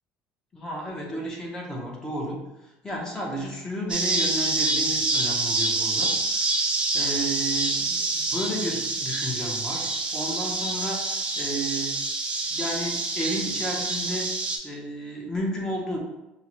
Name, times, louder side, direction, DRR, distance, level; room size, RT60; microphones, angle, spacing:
voice 1, 0.5-2.4 2.8-11.9 12.5-14.3 14.6-16.0, equal, 15° left, -1 dB, 0.9 m, -32 dB
sound 1, 3.9-14.6, right 3 dB, 25° right, 0.6 m, -27 dB
5.3 x 2.1 x 3.0 m, 0.99 s
cardioid pair, 135°, 4 cm